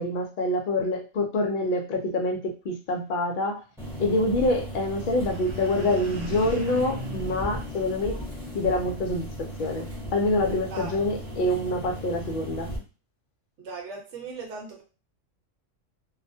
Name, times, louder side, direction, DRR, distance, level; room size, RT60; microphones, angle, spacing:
voice 1, 0.0-3.6 4.0-8.2 8.5-12.7, left 1 dB, 65° left, 0.5 m, -26 dB
sound 1, 3.8-12.8, equal, ahead, 0.7 m, -36 dB
sound 2, 4.9-8.5, right 2 dB, 50° right, 0.5 m, -40 dB
voice 2, 10.7-11.0 13.6-14.8, right 4 dB, 65° right, 1.0 m, -38 dB
2.3 x 2.1 x 2.6 m
omnidirectional pair, 1.3 m